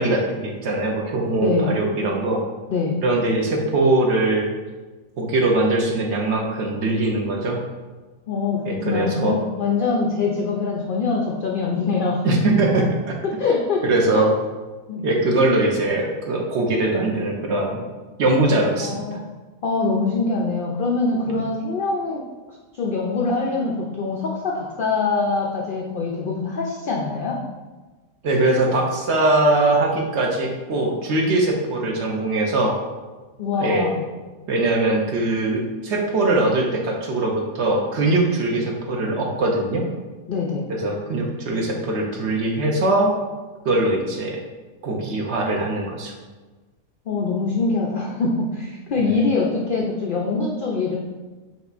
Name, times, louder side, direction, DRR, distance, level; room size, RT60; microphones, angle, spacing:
voice 1, 0.0-2.4 3.0-4.5 5.2-7.6 8.7-9.4 12.2-13.2 13.8-14.4 15.0-17.8 18.2-19.2 21.3-21.4 28.2-32.7 33.5-33.9 34.5-39.8 40.7-43.1 43.6-44.4 44.8-46.1 49.0-49.1, right 2 dB, 60° right, 0 dB, 0.8 m, -21 dB
voice 2, 1.4-1.7 2.7-3.0 8.3-12.3 13.2-13.9 14.1-14.2 14.9-15.1 18.8-19.2 19.6-22.2 22.7-27.4 33.4-34.0 38.5-38.6 40.3-40.7 47.1-51.0, left 4 dB, 80° left, -2 dB, 0.4 m, -24 dB
5.3 x 3.1 x 2.5 m, 1.3 s
omnidirectional pair, 1.4 m